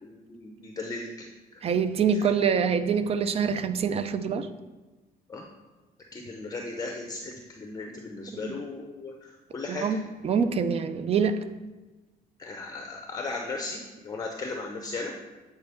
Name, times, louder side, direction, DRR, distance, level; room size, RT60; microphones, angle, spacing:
voice 1, 0.0-1.1 1.5-1.6 2.1-2.3 5.3-5.5 6.1-9.9 12.4-15.1, left 3 dB, 20° left, 1 dB, 0.6 m, -36 dB
voice 2, 1.6-4.5 8.4-8.5 9.7-11.4, right 6 dB, 35° right, 12 dB, 0.4 m, -25 dB
8.2 x 4.3 x 3.5 m, 1.2 s
cardioid pair, 110°, 17 cm